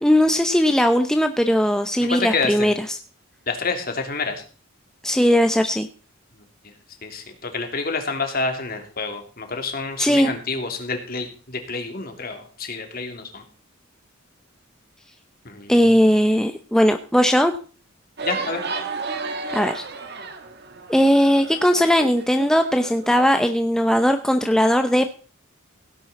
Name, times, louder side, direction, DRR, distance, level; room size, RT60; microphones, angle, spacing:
voice 1, 0.0-3.0 5.0-5.9 10.0-10.3 15.7-17.5 19.5-19.8 20.9-25.1, equal, 5° left, 6 dB, 0.7 m, -18 dB
voice 2, 2.1-2.7 3.5-4.4 6.6-6.7 7.0-13.4 15.4-15.7 18.2-18.6, left 4 dB, 45° left, 5 dB, 2.8 m, -28 dB
sound 1, 18.2-23.3, right 4 dB, 50° right, 1.8 m, -32 dB
17.0 x 10.0 x 4.2 m, 0.38 s
head